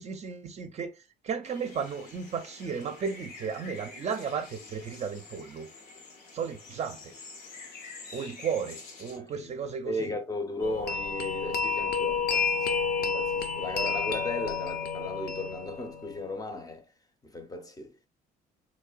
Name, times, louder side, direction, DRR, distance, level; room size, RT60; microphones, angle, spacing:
voice 1, 0.0-5.7 6.3-7.2 8.1-10.1, right 6 dB, 40° right, 0.5 m, -34 dB
sound 1, 1.4-9.2, left 3 dB, 85° left, 1.1 m, -47 dB
voice 2, 9.9-12.7 13.0-16.9 17.2-18.1, left 2 dB, 20° left, 0.6 m, -36 dB
sound 2, 10.6-16.3, left 5 dB, 60° left, 0.6 m, -30 dB
3.6 x 3.1 x 2.3 m
cardioid pair, 110°, 17 cm